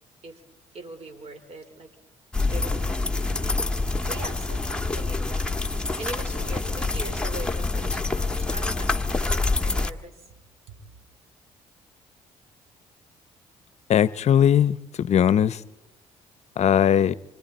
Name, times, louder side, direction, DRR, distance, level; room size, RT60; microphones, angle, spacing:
voice 1, 0.7-1.9 2.5-3.6 4.1-4.6 4.9-5.6 6.0-9.3 9.6-10.2 10.7-10.8, right 2 dB, 50° right, 4.3 m, -41 dB
sound 1, 2.3-9.9, left 3 dB, 5° left, 1.5 m, -26 dB
voice 2, 13.9-15.6 16.6-17.1, left 9 dB, 55° left, 0.7 m, -19 dB
28.0 x 25.0 x 4.3 m
supercardioid pair, 60°, 13 cm